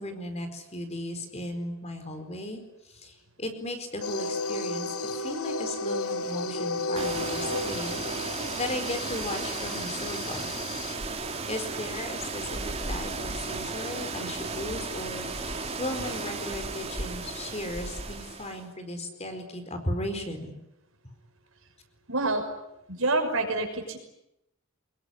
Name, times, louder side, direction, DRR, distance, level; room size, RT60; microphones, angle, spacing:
voice 1, 0.0-10.5 11.2-20.5, left 1 dB, 30° left, 7 dB, 4.5 m, -36 dB
sound 1, 4.0-10.9, left 2 dB, 85° left, 2.3 m, -33 dB
sound 2, 7.0-18.6, right 3 dB, 30° right, 3.9 m, -34 dB
voice 2, 22.1-22.4 22.9-24.0, right 2 dB, 70° right, 5 dB, 6.1 m, -27 dB
25.0 x 21.5 x 10.0 m, 0.85 s
head